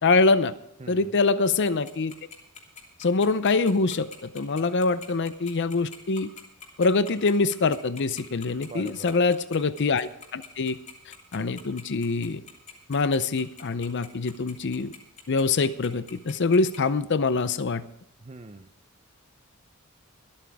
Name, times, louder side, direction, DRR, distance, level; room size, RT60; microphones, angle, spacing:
voice 1, 0.0-0.5 0.9-2.1 3.0-6.3 6.8-10.8 11.3-12.4 12.9-14.9 15.3-17.8, left 3 dB, 55° left, 13 dB, 0.6 m, -24 dB
voice 2, 0.8-1.2 8.6-9.1 18.2-18.7, right 2 dB, 30° right, 8 dB, 0.6 m, -42 dB
Tick-tock, 1.6-16.8, left 7 dB, 35° left, 2.9 m, -44 dB
24.5 x 8.8 x 3.5 m, 0.76 s
head